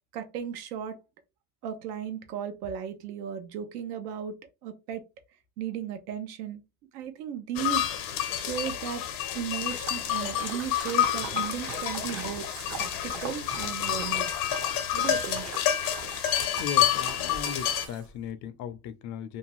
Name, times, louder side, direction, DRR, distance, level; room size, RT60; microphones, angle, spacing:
voice 1, 0.1-1.0 1.6-5.0 5.6-6.6 6.9-7.9 8.4-9.0 9.3-12.5 12.8-14.3 14.9-15.4, right 9 dB, 80° right, 0.8 m, -35 dB
sound 1, 7.6-17.9, left 11 dB, 75° left, 0.8 m, -29 dB
Splash splatter, 9.2-18.3, right 6 dB, 35° right, 0.6 m, -42 dB
voice 2, 16.6-19.4, left 8 dB, 40° left, 0.5 m, -37 dB
2.7 x 2.2 x 3.0 m
supercardioid pair, 115°, 45 cm